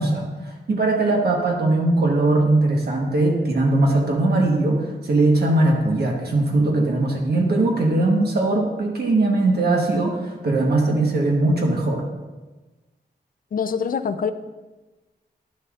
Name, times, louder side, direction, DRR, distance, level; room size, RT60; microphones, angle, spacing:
voice 1, 0.0-12.0, right 2 dB, 65° right, 0 dB, 1.2 m, -20 dB
voice 2, 13.5-14.3, left 6 dB, 50° left, 11 dB, 0.4 m, -24 dB
11.0 x 6.8 x 2.4 m, 1.2 s
wide cardioid pair, 155°, 18 cm